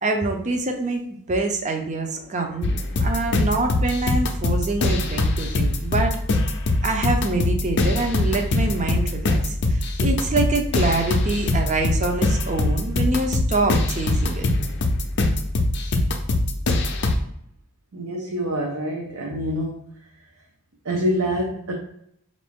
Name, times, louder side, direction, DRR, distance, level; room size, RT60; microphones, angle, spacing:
voice 1, 0.0-6.2 6.8-14.4, right 3 dB, 35° right, 4 dB, 0.5 m, -25 dB
sound 1, 2.6-17.2, left 2 dB, 50° left, 0.5 m, -22 dB
voice 2, 17.9-19.8 20.8-21.7, equal, 70° right, -1 dB, 0.6 m, -26 dB
4.5 x 2.6 x 3.5 m, 0.74 s
head